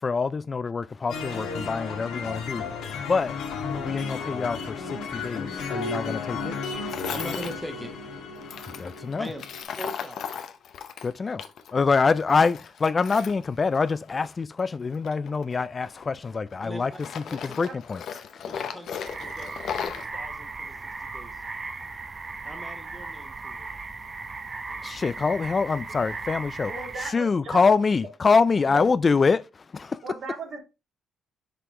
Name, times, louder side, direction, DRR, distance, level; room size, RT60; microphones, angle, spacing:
voice 1, 0.0-2.7 3.1-3.4 3.8-6.6 8.7-9.3 11.0-11.4 11.7-18.0 18.3-18.4 24.8-26.7 27.0-30.0, left 4 dB, 35° left, 0.3 m, -25 dB
sound 1, 1.1-9.6, left 4 dB, 85° left, 1.5 m, -34 dB
Tools, 6.9-7.5 8.4-11.7 12.0-14.3 14.9-16.5 16.9-20.1, left 8 dB, 70° left, 0.7 m, -36 dB
voice 2, 7.1-7.9 9.2-9.4 9.8-10.3 16.6-16.8 17.2-17.4 18.4-21.4 22.4-23.7, equal, 5° right, 1.2 m, -40 dB
sound 2, 19.0-27.1, right 3 dB, 35° right, 0.8 m, -37 dB
voice 3, 26.7-27.7 28.7-28.8 30.0-30.6, right 4 dB, 60° right, 2.7 m, -37 dB
5.9 x 4.9 x 3.2 m
cardioid pair, 90°, 0 cm